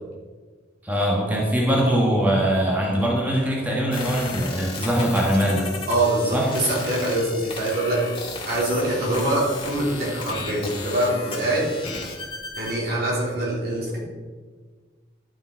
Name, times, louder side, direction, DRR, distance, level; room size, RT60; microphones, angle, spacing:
voice 1, 0.8-5.7 6.3-6.5, equal, 10° right, -4 dB, 1.5 m, -22 dB
sound 1, 3.9-12.8, left 3 dB, 30° left, 2.1 m, -35 dB
voice 2, 5.9-11.7 12.6-14.0, right 1 dB, 60° right, -5 dB, 3.6 m, -24 dB
11.5 x 7.0 x 4.6 m, 1.4 s
head